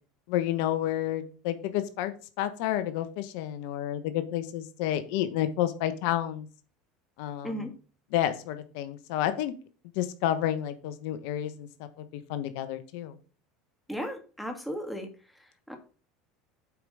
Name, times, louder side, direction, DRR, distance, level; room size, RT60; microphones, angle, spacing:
voice 1, 0.3-6.5 7.2-7.7 8.1-9.5 9.9-11.7 12.0-13.1, left 12 dB, 75° left, 11 dB, 1.0 m, -30 dB
voice 2, 13.9-15.1 15.7-15.8, equal, ahead, 4 dB, 2.3 m, -35 dB
8.1 x 4.8 x 5.4 m, 0.37 s
supercardioid pair, 95°, 0 cm